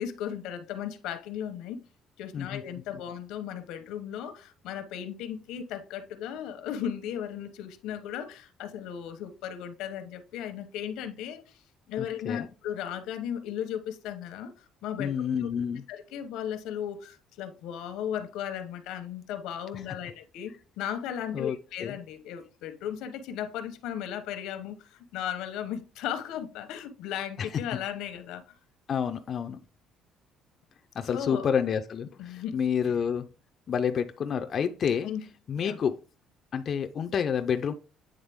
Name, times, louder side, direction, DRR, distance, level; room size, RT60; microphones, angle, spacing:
voice 1, 0.0-1.8 2.2-11.6 11.9-14.5 14.8-15.1 15.4-15.5 15.9-28.4 31.1-31.5 32.2-32.6 35.0-35.2 35.6-35.8, left 9 dB, 90° left, 0.9 m, -36 dB
voice 2, 12.0-12.5 15.0-15.8 21.3-21.6 21.8-21.9 27.4-27.6 28.9-29.6 31.0-33.3 33.7-35.1 35.5-35.9 36.5-37.7, left 7 dB, 35° left, 0.4 m, -29 dB
8.7 x 3.7 x 3.4 m
cardioid pair, 170°, 0 cm